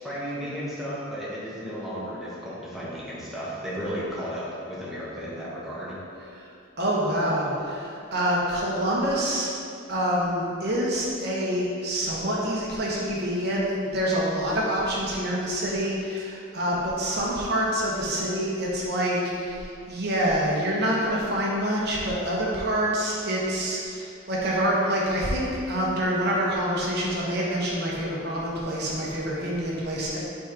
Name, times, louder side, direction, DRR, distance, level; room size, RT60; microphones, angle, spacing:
voice 1, 0.0-5.9, equal, ahead, -9 dB, 1.1 m, -34 dB
voice 2, 6.8-9.5 9.9-30.2, equal, 50° right, -5 dB, 1.1 m, -26 dB
4.6 x 4.1 x 5.2 m, 2.6 s
head